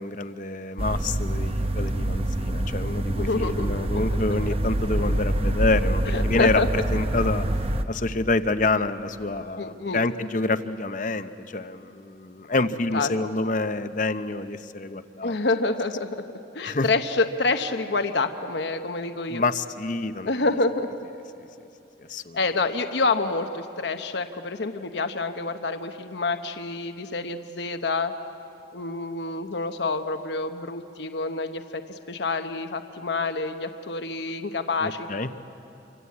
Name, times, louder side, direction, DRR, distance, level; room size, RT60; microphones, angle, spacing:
voice 1, 0.0-7.5 7.9-15.4 16.6-16.9 19.3-20.3 22.1-22.4 34.8-35.3, left 3 dB, 45° left, 11 dB, 0.8 m, -27 dB
sound 1, 0.8-7.8, right 1 dB, 30° right, 1.0 m, -26 dB
voice 2, 3.2-4.2 6.1-6.7 9.6-10.0 12.9-13.1 15.2-16.2 16.5-19.4 20.2-20.9 22.3-28.1 28.7-35.1, left 3 dB, 65° left, 8 dB, 1.0 m, -27 dB
28.5 x 24.0 x 8.5 m, 2.8 s
head